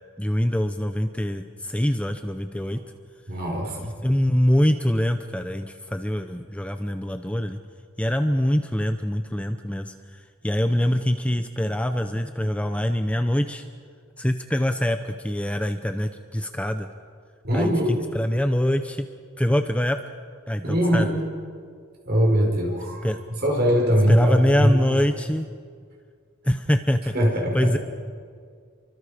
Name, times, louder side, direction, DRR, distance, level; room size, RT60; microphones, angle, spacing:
voice 1, 0.2-2.8 3.8-7.6 8.0-13.6 14.2-16.9 17.5-19.1 19.4-20.0 20.5-21.1 23.0-23.2 24.1-25.5 26.4-27.1 27.5-27.8, equal, 5° left, 7 dB, 0.7 m, -24 dB
voice 2, 3.3-3.9 17.4-18.0 20.6-21.1 22.0-23.1 23.4-24.8 27.1-27.8, equal, 50° right, 1 dB, 5.0 m, -21 dB
29.5 x 24.0 x 5.1 m, 2.1 s
head